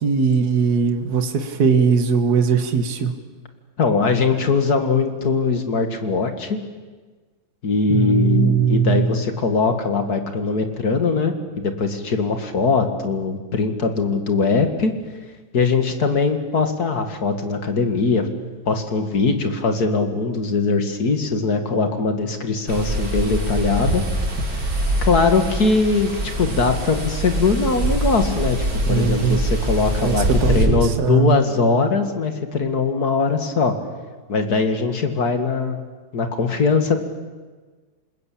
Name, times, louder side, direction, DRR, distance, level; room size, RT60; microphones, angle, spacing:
voice 1, 0.0-3.1 7.9-9.1 28.9-29.4 30.0-31.4, right 6 dB, 50° right, 7 dB, 2.1 m, -19 dB
voice 2, 3.8-6.6 7.6-14.9 15.5-18.3 18.7-24.0 25.0-28.6 28.9-33.7 34.3-35.8 36.1-37.0, left 4 dB, 50° left, 6 dB, 2.5 m, -21 dB
sound 1, 22.7-30.7, right 1 dB, 85° right, 4.6 m, -24 dB
28.0 x 20.0 x 8.6 m, 1.4 s
omnidirectional pair, 2.2 m